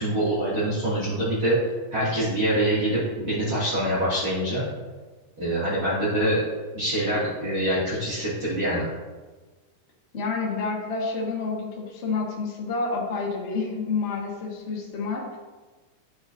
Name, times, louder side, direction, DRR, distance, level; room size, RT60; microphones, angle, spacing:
voice 1, 0.0-1.6 1.9-4.7 5.4-6.4 6.7-8.9, right 1 dB, 35° right, -11 dB, 2.9 m, -25 dB
voice 2, 10.1-15.4, left 4 dB, 60° left, -3 dB, 0.7 m, -29 dB
14.0 x 5.0 x 2.7 m, 1.3 s
omnidirectional pair, 3.8 m